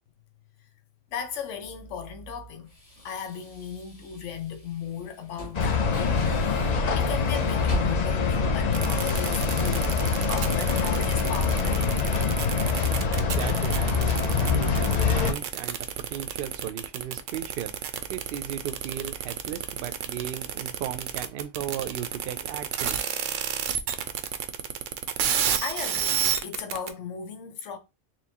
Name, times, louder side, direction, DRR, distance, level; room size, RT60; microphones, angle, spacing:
voice 1, 1.1-2.7 3.0-6.6 6.9-11.9 12.9-13.0 25.6-27.8, left 7 dB, 75° left, 1.1 m, -36 dB
sound 1, 1.1-8.5, right 2 dB, 30° left, 1.2 m, -42 dB
sound 2, 5.5-15.3, left 5 dB, 50° left, 0.5 m, -25 dB
sound 3, 8.7-26.9, right 9 dB, 85° right, 1.0 m, -30 dB
voice 2, 12.9-23.2, right 10 dB, 60° right, 0.6 m, -36 dB
4.3 x 3.1 x 2.8 m
omnidirectional pair, 1.3 m